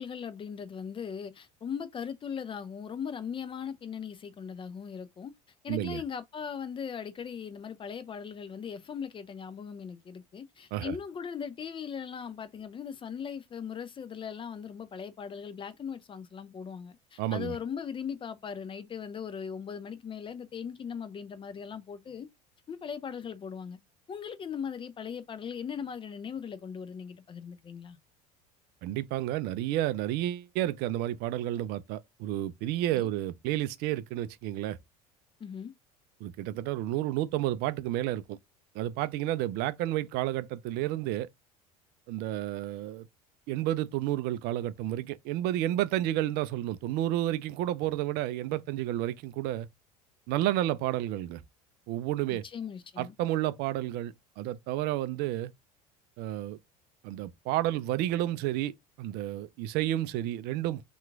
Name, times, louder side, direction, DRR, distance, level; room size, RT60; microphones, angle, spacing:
voice 1, 0.0-5.3 5.6-22.3 22.7-23.8 24.1-28.0 32.9-33.1 35.4-35.7 52.3-53.1, left 7 dB, 25° left, 0.5 m, -39 dB
voice 2, 5.7-6.0 10.7-10.9 17.2-17.6 28.8-34.8 36.2-38.4 38.8-41.3 42.1-43.0 43.5-49.7 50.3-51.4 51.9-52.4 53.0-55.5 56.2-56.6 57.0-58.7 59.0-60.8, right 14 dB, 55° right, 0.4 m, -31 dB
2.9 x 2.4 x 3.5 m
hypercardioid pair, 75°, 19 cm